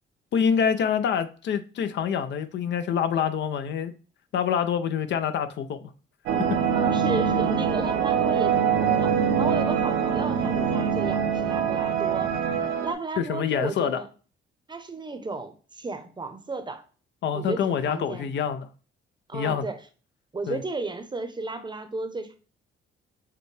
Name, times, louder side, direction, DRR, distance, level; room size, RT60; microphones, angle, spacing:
voice 1, 0.3-3.9 4.3-5.9 13.2-14.0 17.2-18.7 19.3-19.7 20.5-20.6, left 7 dB, 65° left, 0.5 m, -26 dB
sound 1, 6.3-12.9, right 7 dB, 85° right, 0.8 m, -24 dB
voice 2, 6.7-12.3 12.8-14.1 14.7-16.8 17.3-18.3 19.3-19.8 20.3-22.4, right 3 dB, 20° right, 0.7 m, -34 dB
6.7 x 2.3 x 3.2 m
cardioid pair, 90°, 20 cm